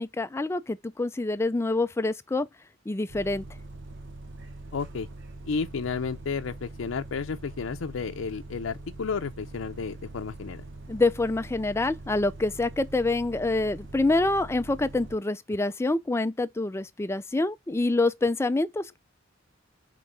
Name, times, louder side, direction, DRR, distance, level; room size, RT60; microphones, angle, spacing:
voice 1, 0.0-2.5 2.9-3.4 10.9-19.0, left 2 dB, 15° left, 0.4 m, -26 dB
Bus, 3.1-15.2, right 2 dB, 65° right, 0.9 m, -43 dB
voice 2, 4.7-5.1 5.4-10.6, left 5 dB, 85° left, 0.5 m, -32 dB
5.1 x 3.4 x 5.4 m
head